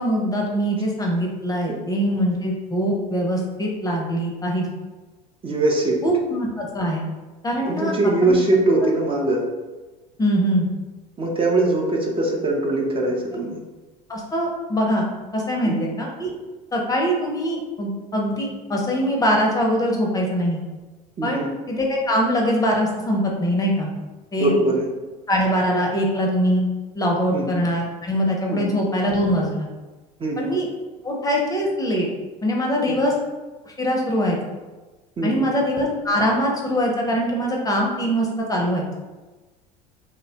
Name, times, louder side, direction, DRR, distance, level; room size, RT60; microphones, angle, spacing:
voice 1, 0.0-4.7 6.0-7.0 7.4-7.9 8.2-8.4 10.2-10.7 14.1-15.1 15.3-16.3 16.7-20.6 21.2-21.4 21.7-23.9 24.3-24.5 25.3-26.6 26.9-29.7 30.4-30.7 31.0-32.1 32.4-33.1 33.7-34.4 35.2-38.8, equal, 20° left, -1 dB, 0.5 m, -22 dB
voice 2, 5.4-6.0 7.7-9.4 11.2-13.6 15.6-15.9 21.2-21.5 24.4-24.8 27.3-27.5 28.5-28.6 30.2-30.5 32.9-33.0 35.2-35.5, right 2 dB, 30° right, -1 dB, 0.5 m, -21 dB
2.7 x 2.0 x 2.7 m, 1.2 s
hypercardioid pair, 85°, 18 cm